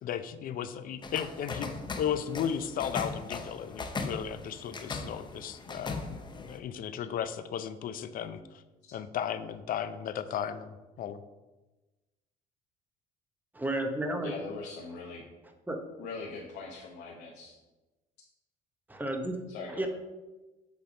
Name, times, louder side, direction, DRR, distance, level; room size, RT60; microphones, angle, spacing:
voice 1, 0.0-8.4 8.9-11.2, left 8 dB, 55° left, 12 dB, 0.5 m, -35 dB
sound 1, 1.0-6.6, left 3 dB, 25° left, 0.8 m, -39 dB
voice 2, 13.5-14.3 15.7-15.8 18.9-19.4 19.8-19.9, right 1 dB, 10° right, 5 dB, 0.9 m, -32 dB
voice 3, 14.2-15.2 16.0-17.6 19.5-19.9, left 4 dB, 80° left, -3 dB, 1.1 m, -41 dB
8.1 x 3.4 x 5.1 m, 1.1 s
cardioid pair, 110°, 17 cm